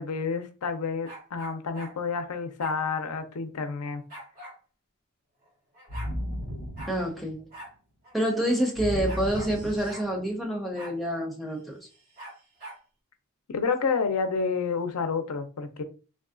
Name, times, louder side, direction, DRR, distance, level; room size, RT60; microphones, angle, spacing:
voice 1, 0.0-4.0 13.5-15.8, left 5 dB, 80° left, 0.5 m, -29 dB
sound 1, 1.0-1.9 2.6-2.8 4.1-4.6 5.4-5.5 5.7-6.1 6.8-7.0 7.5-7.7 8.0-8.1 9.1-9.5 9.9-10.1 10.7-11.0 12.2-12.8, right 1 dB, 45° right, 1.4 m, -43 dB
sound 2, 5.9-7.6 8.8-10.4, equal, 65° right, 1.6 m, -35 dB
voice 2, 6.9-7.4 8.1-11.9, equal, ahead, 0.6 m, -28 dB
3.5 x 2.2 x 2.5 m
head